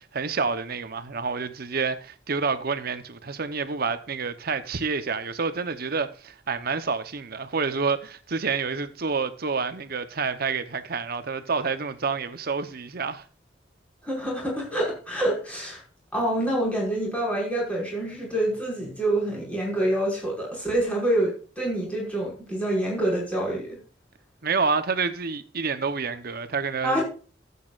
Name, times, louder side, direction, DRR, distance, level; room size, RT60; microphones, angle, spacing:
voice 1, 0.1-13.2 24.4-27.0, right 5 dB, 55° right, 0.9 m, -28 dB
voice 2, 14.0-15.8 16.1-23.7 26.8-27.0, right 1 dB, 5° left, 5.5 m, -26 dB
14.5 x 8.5 x 2.5 m
head